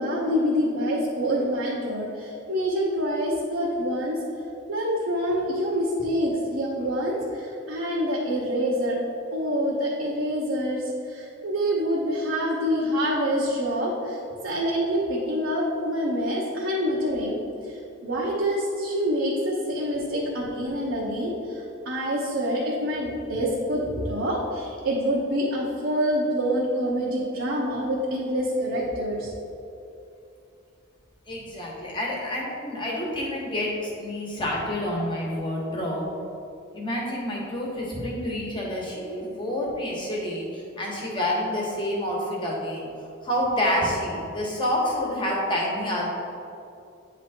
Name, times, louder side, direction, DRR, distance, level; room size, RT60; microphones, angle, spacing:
voice 1, 0.0-4.2 4.7-9.0 9.3-17.4 17.6-29.3, equal, 65° right, -6 dB, 0.9 m, -26 dB
voice 2, 31.3-36.0 36.7-42.9 43.2-46.1, left 1 dB, 25° left, -3 dB, 1.2 m, -28 dB
9.0 x 3.0 x 4.3 m, 2.7 s
head